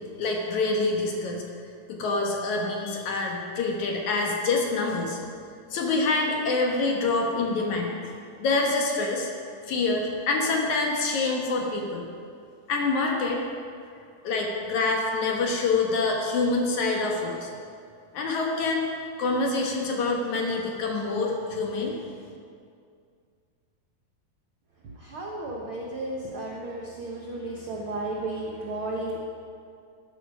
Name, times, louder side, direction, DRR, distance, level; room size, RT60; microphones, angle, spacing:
voice 1, 0.0-1.4 1.9-5.2 5.7-8.1 8.4-9.3 9.7-12.0 12.7-13.4 14.2-17.5 18.1-18.9 19.2-22.0, left 3 dB, 60° left, 0 dB, 2.4 m, -26 dB
voice 2, 24.8-29.2, right 2 dB, 70° right, -2 dB, 1.2 m, -33 dB
12.5 x 11.5 x 5.5 m, 2.3 s
omnidirectional pair, 4.2 m